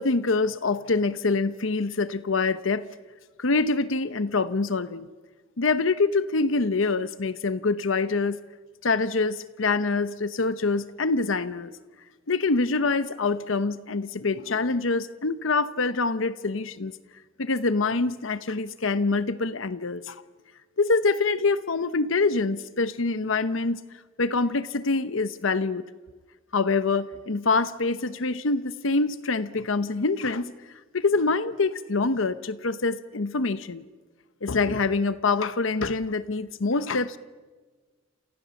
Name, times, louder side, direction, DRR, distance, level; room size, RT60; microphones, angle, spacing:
voice 1, 0.0-2.9 3.4-5.1 5.6-8.4 8.8-11.7 12.3-16.9 17.4-20.2 20.8-23.8 24.2-25.8 26.5-30.5 30.9-33.8 34.4-37.2, left 3 dB, 90° left, 13 dB, 0.9 m, -25 dB
29.5 x 28.0 x 7.1 m, 1.4 s
head